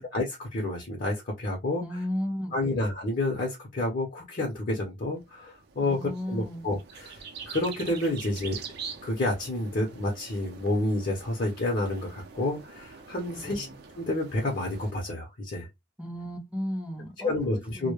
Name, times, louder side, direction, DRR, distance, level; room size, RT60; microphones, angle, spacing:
voice 1, 0.0-1.8 2.5-6.0 6.3-8.6 9.0-13.7 14.0-15.7 17.2-17.9, left 2 dB, 45° left, 0.6 m, -29 dB
voice 2, 1.8-2.8 5.8-6.6 13.3-13.8 16.0-17.9, equal, 5° right, 0.6 m, -35 dB
sound 1, 5.2-14.9, right 6 dB, 55° right, 0.5 m, -45 dB
2.1 x 2.1 x 2.9 m
head